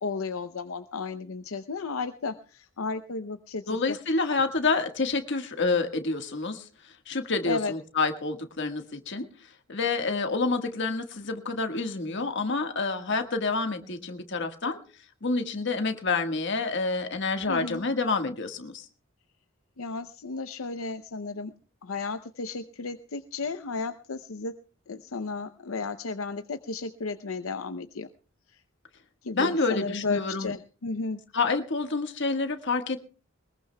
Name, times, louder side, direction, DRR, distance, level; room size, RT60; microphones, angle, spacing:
voice 1, 0.0-4.0 7.5-7.7 17.5-17.8 19.8-21.5 21.8-24.5 24.9-28.1 28.5-28.6 29.2-31.2, left 4 dB, 80° left, 9 dB, 0.7 m, -33 dB
voice 2, 3.7-6.7 7.1-9.3 9.7-14.8 15.2-18.8 29.3-30.5 31.3-33.0, left 3 dB, 55° left, 6 dB, 1.6 m, -28 dB
22.5 x 20.5 x 2.2 m, 0.38 s
head